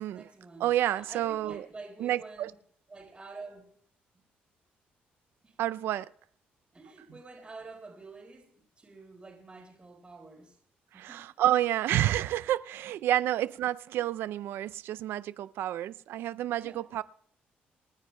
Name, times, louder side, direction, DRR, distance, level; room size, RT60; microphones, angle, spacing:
voice 1, 0.0-0.7 1.0-2.5 2.9-3.7 4.1-4.2 5.4-5.8 6.7-10.6 10.9-11.3 16.5-16.8, right 3 dB, 30° right, 4.2 m, -48 dB
voice 2, 0.6-1.6 2.0-2.5 5.6-6.1 10.9-17.0, right 13 dB, 80° right, 0.4 m, -29 dB
27.5 x 9.8 x 2.2 m
cardioid pair, 80°, 4 cm